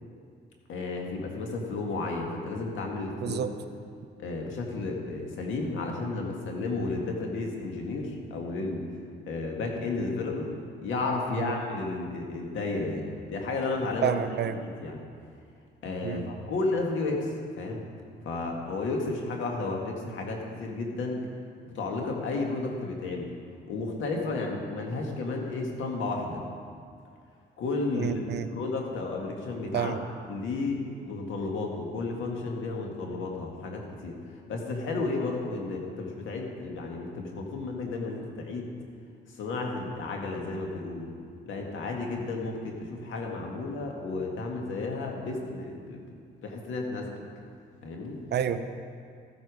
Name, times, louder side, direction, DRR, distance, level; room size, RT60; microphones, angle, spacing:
voice 1, 0.7-3.5 4.2-8.9 9.3-10.5 10.8-14.2 14.6-15.0 15.8-17.8 18.3-21.3 21.7-23.3 23.7-26.4 27.6-28.2 28.5-29.9 30.3-38.7 39.3-41.1 41.5-47.2 47.8-48.2, left 3 dB, 75° left, 1 dB, 2.0 m, -32 dB
voice 2, 14.0-14.5 16.0-16.2 28.0-28.5 29.7-30.0 48.3-48.6, right 9 dB, 60° right, 10 dB, 0.7 m, -29 dB
14.0 x 8.5 x 5.0 m, 2.3 s
cardioid pair, 90°, 20 cm